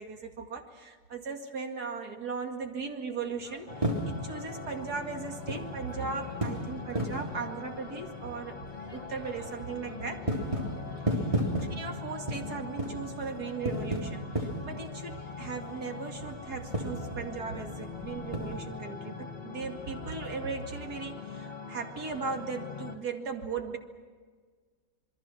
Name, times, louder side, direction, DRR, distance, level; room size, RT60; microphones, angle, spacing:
voice 1, 0.0-8.6 8.9-10.2 11.1-11.4 11.7-23.8, right 5 dB, 90° right, 4 dB, 2.8 m, -38 dB
sound 1, 3.3-18.6, right 1 dB, 20° right, 3.5 m, -36 dB
sound 2, 3.7-23.0, left 5 dB, 35° left, 2.4 m, -42 dB
27.0 x 22.5 x 6.1 m, 1.5 s
omnidirectional pair, 1.6 m